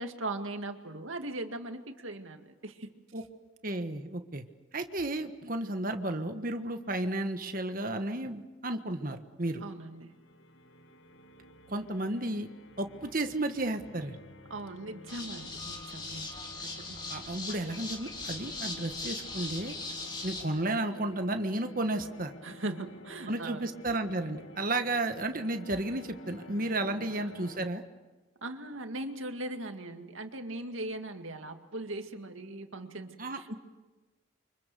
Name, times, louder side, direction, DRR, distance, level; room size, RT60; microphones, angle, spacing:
voice 1, 0.0-2.9 9.6-10.1 14.5-16.3 16.9-17.4 22.4-23.7 27.0-27.1 28.4-33.5, right 2 dB, 75° right, 6 dB, 2.1 m, -39 dB
voice 2, 3.6-4.4 4.7-9.6 11.7-12.5 12.8-14.2 17.1-19.7 20.2-22.3 23.3-27.8 33.2-33.5, right 2 dB, 40° right, 6 dB, 1.4 m, -33 dB
sound 1, 9.8-27.7, left 1 dB, 65° left, 1.9 m, -51 dB
sound 2, 15.1-20.4, left 3 dB, 20° left, 3.0 m, -40 dB
29.0 x 25.0 x 6.9 m, 1.2 s
head